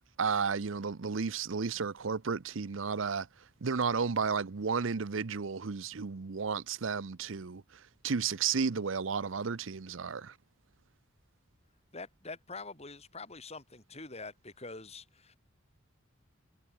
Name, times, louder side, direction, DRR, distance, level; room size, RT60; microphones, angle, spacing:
voice 1, 0.2-3.3 3.6-7.6 8.0-10.3, right 5 dB, 75° right, 0.7 m, -32 dB
voice 2, 11.9-15.4, left 3 dB, 30° left, 7.4 m, -45 dB
head